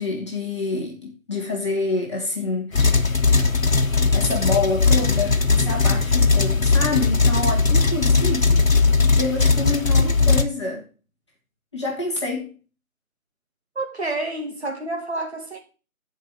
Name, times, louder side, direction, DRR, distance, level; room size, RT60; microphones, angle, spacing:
voice 1, 0.0-3.5 4.1-8.6 9.2-10.9 11.7-12.5, left 3 dB, 20° left, 1.7 m, -27 dB
sound 1, 2.7-10.4, left 4 dB, 70° left, 1.2 m, -18 dB
voice 2, 13.8-15.6, right 2 dB, 50° right, 2.4 m, -29 dB
14.0 x 5.1 x 3.5 m
figure-of-eight pair, 160°, 41 cm